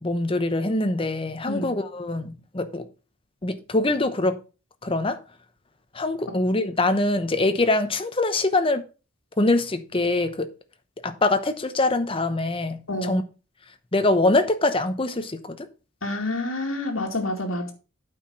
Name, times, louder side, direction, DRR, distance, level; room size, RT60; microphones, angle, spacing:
voice 1, 0.0-2.9 3.4-4.4 4.8-5.2 5.9-8.8 9.4-10.5 11.0-13.2 13.9-15.7, left 2 dB, 25° left, 0.8 m, -24 dB
voice 2, 16.0-17.7, left 1 dB, 75° left, 2.2 m, -28 dB
8.8 x 4.9 x 5.6 m
head